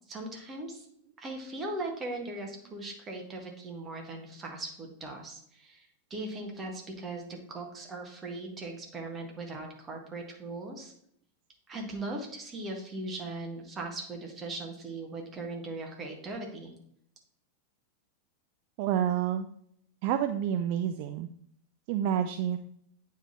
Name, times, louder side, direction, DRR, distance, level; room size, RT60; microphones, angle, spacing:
voice 1, 0.1-0.9 1.2-10.9 11.7-16.7, right 2 dB, 20° right, 1 dB, 1.5 m, -39 dB
voice 2, 18.8-19.5 20.0-21.3 21.9-22.6, right 9 dB, 45° right, 8 dB, 0.4 m, -28 dB
8.9 x 3.7 x 4.2 m, 0.69 s
figure-of-eight pair, 90°, 0 cm